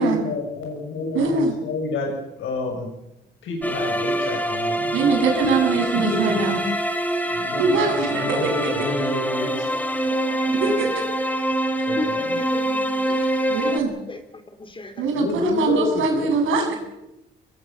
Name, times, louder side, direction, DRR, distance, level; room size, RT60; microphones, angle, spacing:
voice 1, 0.0-2.9 3.4-4.9 5.5-6.4 7.3-9.7 11.9-12.4 15.1-16.4, left 3 dB, 75° left, 0 dB, 8.0 m, -29 dB
voice 2, 1.1-1.5 4.9-6.6 7.6-8.7 10.6-11.0 13.5-13.9 15.0-16.8, right 4 dB, 85° right, 3 dB, 7.5 m, -22 dB
sound 1, 3.6-13.8, right 1 dB, 10° left, 3.6 m, -25 dB
voice 3, 10.1-10.9 12.0-13.3 13.7-14.2 14.6-15.0, left 2 dB, 25° left, 7 dB, 4.1 m, -35 dB
24.5 x 21.5 x 7.5 m, 0.91 s
cardioid pair, 90°, 20 cm